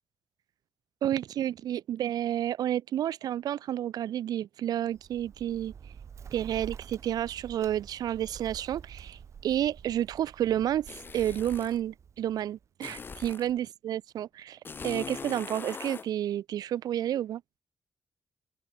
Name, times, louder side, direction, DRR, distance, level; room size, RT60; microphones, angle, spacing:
voice 1, 1.0-5.7 6.3-17.4, right 11 dB, 90° right, 1.0 m, -30 dB
Bird, 4.9-12.7, right 7 dB, 50° right, 4.8 m, -48 dB
sound 1, 10.9-11.8 12.8-13.5 14.6-16.1, left 5 dB, 35° left, 1.3 m, -41 dB
open air
wide cardioid pair, 150°, 7 cm